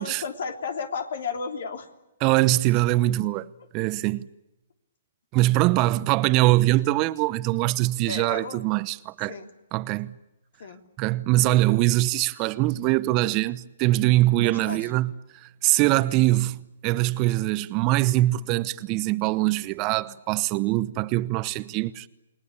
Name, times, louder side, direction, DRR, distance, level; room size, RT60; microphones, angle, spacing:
voice 1, 0.0-1.9 8.0-8.6 9.3-9.5 10.6-10.8 14.4-14.9, left 5 dB, 65° left, 3.5 m, -33 dB
voice 2, 2.2-3.5 3.7-4.3 5.3-9.4 9.7-10.1 11.0-15.1 15.4-22.1, right 17 dB, 30° right, 0.9 m, -23 dB
29.5 x 20.0 x 8.4 m
hypercardioid pair, 145°, 0 cm